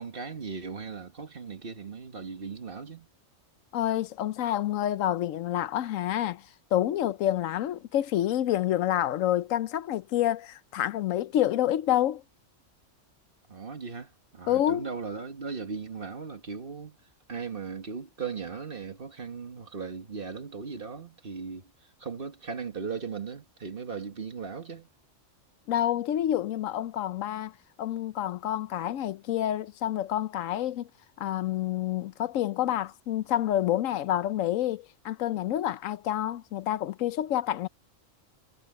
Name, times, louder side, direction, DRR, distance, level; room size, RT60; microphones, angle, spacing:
voice 1, 0.0-3.1 13.5-17.0 17.3-24.9, right 5 dB, 45° right, 1.7 m, -38 dB
voice 2, 3.7-12.2 14.5-14.8 25.7-27.5 27.8-30.9 31.2-37.7, left 12 dB, 80° left, 1.0 m, -28 dB
omnidirectional pair, 1.3 m